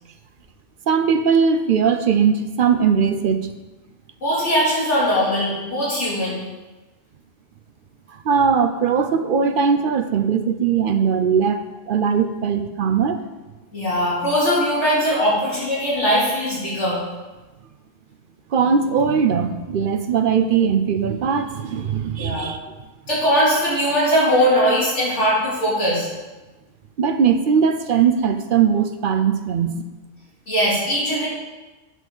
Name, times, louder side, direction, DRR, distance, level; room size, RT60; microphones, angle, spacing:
voice 1, 0.9-3.5 8.2-11.6 11.9-13.2 18.5-22.6 27.0-29.8, right 6 dB, 60° right, 8 dB, 0.6 m, -19 dB
voice 2, 4.2-6.4 13.7-17.0 22.2-22.5 23.1-26.1 30.5-31.3, equal, 70° left, -8 dB, 2.8 m, -20 dB
9.1 x 6.2 x 3.9 m, 1.2 s
omnidirectional pair, 1.3 m